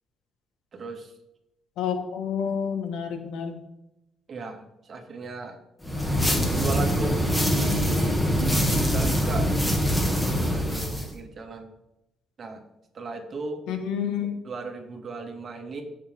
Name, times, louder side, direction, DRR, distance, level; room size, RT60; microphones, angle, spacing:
voice 1, 0.7-1.1 4.3-4.6 4.9-5.6 6.6-9.5 10.3-11.7 12.4-12.6 12.9-13.6 14.4-15.8, right 3 dB, 50° right, 4 dB, 2.2 m, -35 dB
voice 2, 1.8-3.6 13.7-14.3, left 7 dB, 90° left, 6 dB, 1.6 m, -29 dB
sound 1, 5.8-11.1, equal, 10° left, 2.4 m, -24 dB
16.5 x 6.8 x 3.7 m, 0.88 s
cardioid pair, 90°, 0 cm